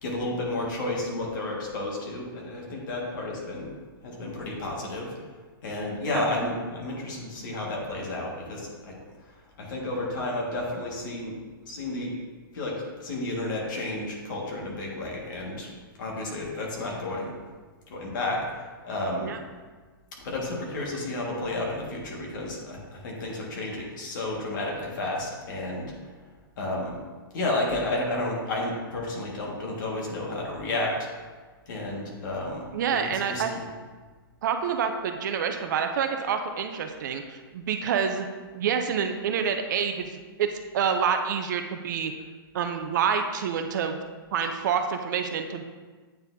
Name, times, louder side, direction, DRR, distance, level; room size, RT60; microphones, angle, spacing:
voice 1, 0.0-3.7 4.0-5.1 5.6-9.0 9.6-11.3 11.7-12.1 12.5-15.7 16.0-17.3 17.9-19.3 20.2-25.9 26.6-27.0 27.3-31.0 31.7-33.0 33.2-33.7, left 2 dB, 55° left, -2 dB, 1.8 m, -31 dB
voice 2, 32.7-33.5 34.4-38.3 38.5-40.5 40.7-42.1 42.5-44.0 44.3-45.6, right 7 dB, 50° right, 6 dB, 0.5 m, -27 dB
8.8 x 4.1 x 2.7 m, 1.4 s
hypercardioid pair, 155°, 13 cm